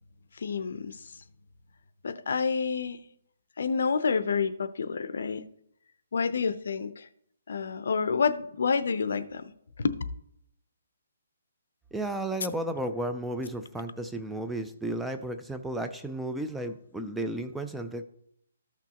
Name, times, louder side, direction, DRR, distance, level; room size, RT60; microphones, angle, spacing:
voice 1, 0.4-1.0 2.0-3.0 3.6-5.5 6.1-7.1 7.5-9.5 9.8-10.0, left 5 dB, 65° left, 0.6 m, -28 dB
voice 2, 11.9-18.0, right 1 dB, 5° right, 0.3 m, -33 dB
14.0 x 6.0 x 2.9 m
hypercardioid pair, 170°, 0 cm